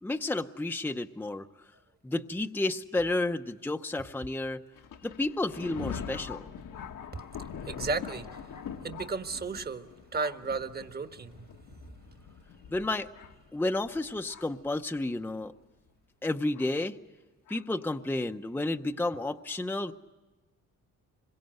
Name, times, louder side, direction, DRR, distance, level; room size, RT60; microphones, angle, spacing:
voice 1, 0.0-1.5 2.0-4.6 5.0-6.5 12.7-13.1 13.5-15.5 16.2-17.0 17.5-19.9, left 2 dB, 5° left, 6 dB, 0.7 m, -31 dB
Thunder, 4.7-14.7 15.4-15.5 16.5-16.7 17.5-17.6, left 7 dB, 80° left, 1.5 m, -43 dB
voice 2, 7.7-8.5 8.8-11.4 11.7-11.8, right 4 dB, 30° right, 8 dB, 1.3 m, -34 dB
26.0 x 23.0 x 7.8 m, 1.2 s
cardioid pair, 120°, 31 cm